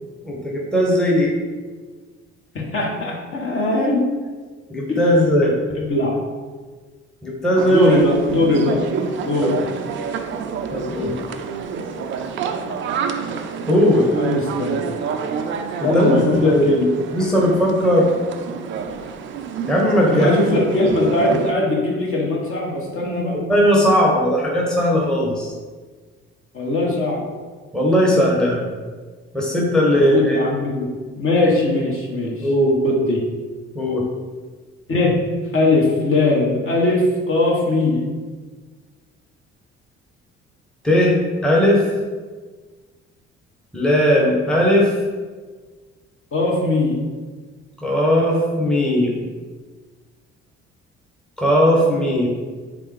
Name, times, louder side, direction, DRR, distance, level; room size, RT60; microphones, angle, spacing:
voice 1, 0.2-1.3 4.7-5.5 7.2-8.0 9.4-9.5 10.7-11.1 13.7-14.1 15.8-16.7 17.1-18.1 19.7-20.3 23.3-25.5 27.7-28.7 29.3-30.4 32.4-32.8 33.7-34.0 40.8-41.8 43.7-44.9 47.8-49.2 51.4-52.3, equal, ahead, -3 dB, 0.9 m, -17 dB
voice 2, 2.5-4.0 4.9-5.0 5.7-6.2 7.7-8.8 9.2-9.5 14.1-14.8 15.8-16.9 20.0-23.3 26.5-27.2 29.9-30.9 31.2-32.5 32.8-33.2 34.9-35.2 35.5-38.0 46.3-47.0, left 2 dB, 35° left, -2 dB, 1.0 m, -20 dB
sound 1, 7.5-21.5, right 6 dB, 35° right, 0.4 m, -28 dB
3.6 x 3.3 x 3.3 m, 1.4 s
figure-of-eight pair, 45°, 34 cm